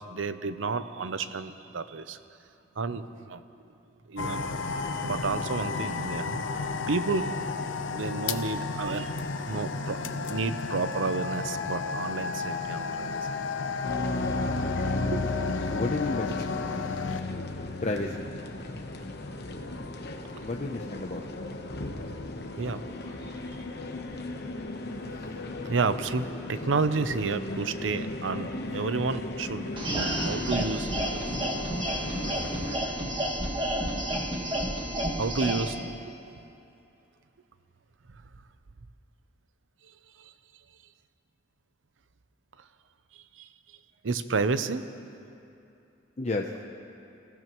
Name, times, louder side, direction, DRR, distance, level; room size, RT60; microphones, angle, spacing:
voice 1, 0.0-2.2 2.8-3.4 4.1-4.4 5.0-7.4 7.9-13.2 14.8-15.3 20.3-20.4 22.6-22.8 23.1-23.2 23.5-23.6 25.7-30.9 35.2-36.2 40.2-40.3 43.1-43.8 44.0-44.8, right 4 dB, 85° right, 11 dB, 0.6 m, -31 dB
sound 1, 4.2-17.2, left 4 dB, 85° left, 0.7 m, -33 dB
sound 2, 13.8-32.8, left 2 dB, 60° left, 1.0 m, -35 dB
voice 2, 15.7-16.3 17.8-18.2 20.4-21.2 46.2-46.5, left 2 dB, 40° left, 1 dB, 0.7 m, -31 dB
sound 3, 29.8-35.7, right 1 dB, 25° right, 1.9 m, -30 dB
26.0 x 15.5 x 3.0 m, 2.7 s
head